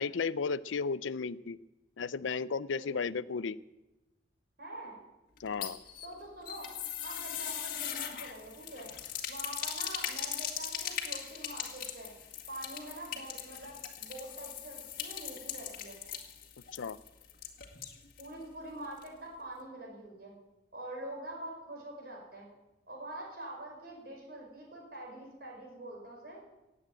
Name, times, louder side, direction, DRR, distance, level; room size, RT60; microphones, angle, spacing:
voice 1, 0.0-1.6 2.0-3.6 5.4-5.8 16.7-17.0, left 5 dB, 90° left, 17 dB, 0.5 m, -34 dB
voice 2, 4.6-5.0 6.0-6.7 7.0-8.9 9.3-12.1 12.5-16.0 18.2-20.3 20.7-22.5 22.9-26.4, right 1 dB, 55° right, -1 dB, 5.5 m, -45 dB
sound 1, 5.4-18.3 18.6-18.7 19.0-19.1, left 9 dB, 50° left, 2.0 m, -40 dB
17.5 x 8.6 x 8.9 m, 1.0 s
head